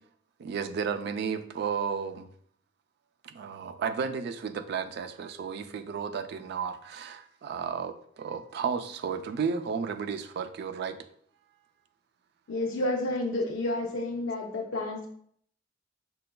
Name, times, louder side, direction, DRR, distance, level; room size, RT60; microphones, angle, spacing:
voice 1, 0.4-2.3 3.2-11.0, right 6 dB, 60° right, 9 dB, 0.3 m, -33 dB
voice 2, 12.5-15.1, left 2 dB, 85° left, -2 dB, 0.5 m, -30 dB
6.6 x 2.2 x 2.2 m, 0.64 s
head